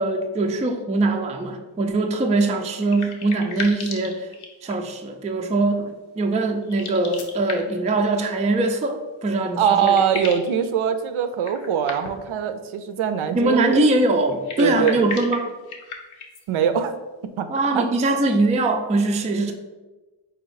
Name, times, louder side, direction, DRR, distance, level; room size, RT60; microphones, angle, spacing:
voice 1, 0.0-4.3 4.6-10.0 13.3-15.5 17.5-19.5, right 2 dB, 15° right, 4 dB, 0.3 m, -22 dB
sound 1, 2.5-5.0 6.6-7.9 9.3-9.4 9.6-10.6 11.4-12.4 14.3-16.4, left 4 dB, 80° left, 0.8 m, -36 dB
voice 2, 9.6-13.9 14.6-15.0 16.5-16.9 17.4-17.5 17.7-17.8, right 8 dB, 75° right, 9 dB, 0.5 m, -22 dB
4.2 x 2.8 x 3.9 m, 1.2 s
cardioid pair, 70°, 49 cm